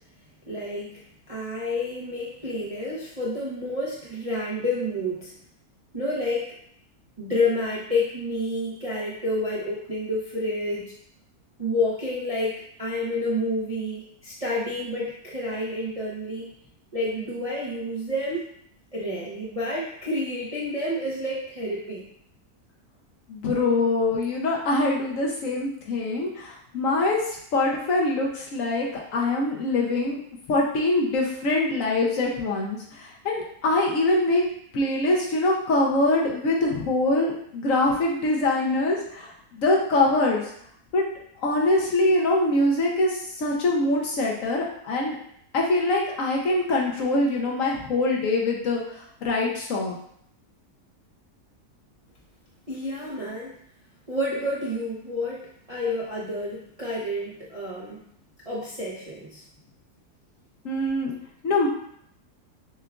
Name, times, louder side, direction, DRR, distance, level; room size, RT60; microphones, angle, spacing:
voice 1, 0.5-1.0 1.3-5.3 5.9-6.4 7.2-10.9 11.6-16.5 16.9-18.5 18.9-22.0 52.7-53.5 54.1-58.0 58.5-59.4, left 1 dB, 40° right, -8 dB, 0.5 m, -29 dB
voice 2, 23.3-28.9 29.1-30.2 30.5-34.4 34.7-40.5 40.9-41.0 41.4-45.2 45.5-49.9 60.6-61.1 61.4-61.7, left 2 dB, 65° left, -1 dB, 1.0 m, -24 dB
6.6 x 2.3 x 2.3 m, 0.68 s
omnidirectional pair, 1.7 m